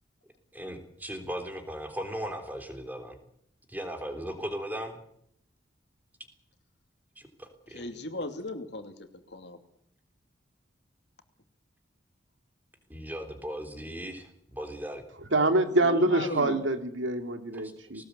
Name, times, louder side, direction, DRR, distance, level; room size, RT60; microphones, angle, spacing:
voice 1, 0.5-3.2 3.7-5.0 7.2-7.8 12.9-15.0 17.9-18.0, equal, 10° right, 5 dB, 3.4 m, -37 dB
voice 2, 7.7-9.6 15.8-16.6, left 1 dB, 60° left, 7 dB, 2.8 m, -37 dB
voice 3, 15.3-18.0, right 2 dB, 80° right, 7 dB, 2.4 m, -25 dB
20.5 x 19.0 x 8.3 m, 0.70 s
head